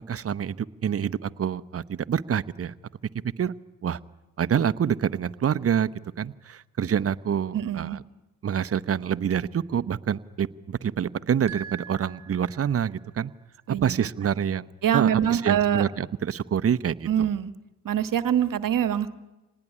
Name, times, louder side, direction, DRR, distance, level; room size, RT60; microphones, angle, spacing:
voice 1, 0.1-2.7 3.4-3.5 3.8-4.0 4.4-5.9 6.2-8.0 8.4-13.3 13.8-14.7 14.9-17.1, right 8 dB, 35° right, 14 dB, 0.9 m, -26 dB
voice 2, 7.5-8.0 13.7-14.3 14.8-15.8 17.1-17.5 17.8-19.2, right 9 dB, 55° right, 12 dB, 1.4 m, -25 dB
sound 1, 11.5-13.0, right 7 dB, 15° right, 5.8 m, -42 dB
26.5 x 19.5 x 10.0 m, 1.1 s
cardioid pair, 80°, 39 cm